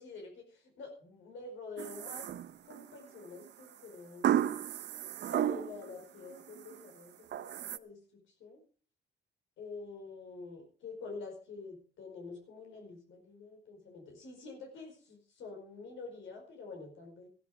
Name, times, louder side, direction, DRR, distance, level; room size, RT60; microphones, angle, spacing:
voice 1, 0.0-2.3 2.6-4.5 5.3-8.0 8.4-8.6 9.6-17.3, left 4 dB, 80° left, 2 dB, 4.8 m, -47 dB
sound 1, 1.8-2.9 4.2-5.9 6.3-6.8 7.3-7.8, right 11 dB, 60° right, 0.6 m, -33 dB
14.5 x 11.0 x 4.9 m, 0.40 s
cardioid pair, 90°, 20 cm